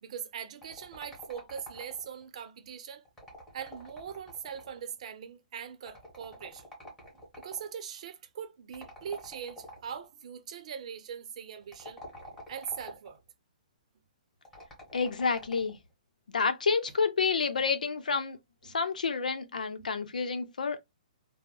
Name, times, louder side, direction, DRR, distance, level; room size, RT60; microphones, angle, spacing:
voice 1, 0.0-3.0 3.5-6.7 7.4-12.0 12.5-13.2 18.6-18.8 19.8-19.9, right 8 dB, 60° right, 0.6 m, -41 dB
sound 1, 0.6-2.2 3.0-4.9 5.9-7.7 8.7-10.0 11.6-13.2 14.4-15.8, left 1 dB, 10° left, 1.5 m, -48 dB
voice 2, 14.9-15.8 16.3-18.4 18.6-20.8, left 5 dB, 90° left, 0.6 m, -29 dB
3.5 x 2.0 x 2.2 m
hypercardioid pair, 145°, 4 cm